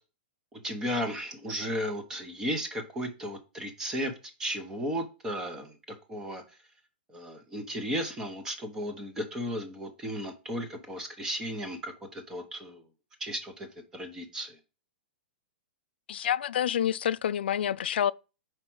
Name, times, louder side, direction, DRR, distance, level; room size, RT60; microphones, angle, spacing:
voice 1, 0.5-4.1 4.4-5.8 6.1-6.4 7.1-12.8 13.2-13.7 13.9-14.6, equal, 10° right, 0.8 m, -34 dB
voice 2, 16.1-18.1, left 10 dB, 85° left, 0.3 m, -28 dB
4.9 x 4.5 x 6.1 m
hypercardioid pair, 175°, 5 cm